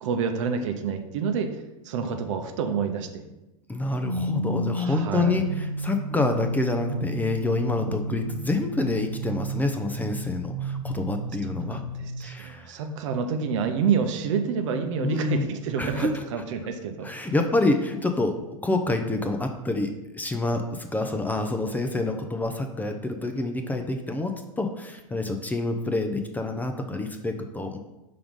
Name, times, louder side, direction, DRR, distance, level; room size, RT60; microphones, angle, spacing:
voice 1, 0.0-1.5 1.8-3.2 4.8-5.4 11.6-17.3, right 6 dB, 60° right, 6 dB, 0.8 m, -28 dB
voice 2, 3.7-11.8 12.2-12.8 15.0-15.5 15.8-16.2 17.0-27.8, left 2 dB, 10° left, 5 dB, 0.6 m, -27 dB
sound 1, 4.0-12.2, right 1 dB, 90° right, 1.0 m, -32 dB
5.7 x 3.8 x 5.2 m, 0.97 s
hypercardioid pair, 90°, 18 cm